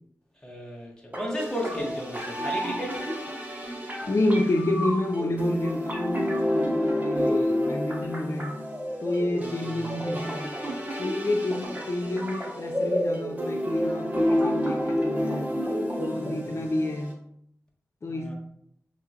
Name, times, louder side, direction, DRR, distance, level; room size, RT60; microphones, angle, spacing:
voice 1, 0.4-3.0 9.4-10.0 16.1-16.4 18.1-18.3, equal, 10° left, 1.3 m, -35 dB
sound 1, 1.1-17.1, equal, 25° right, 1.2 m, -29 dB
voice 2, 4.1-8.6 9.0-10.6 11.0-15.5 16.0-17.2 18.0-18.3, left 1 dB, 55° left, 0.5 m, -29 dB
5.5 x 2.4 x 2.8 m
cardioid pair, 40°, 6 cm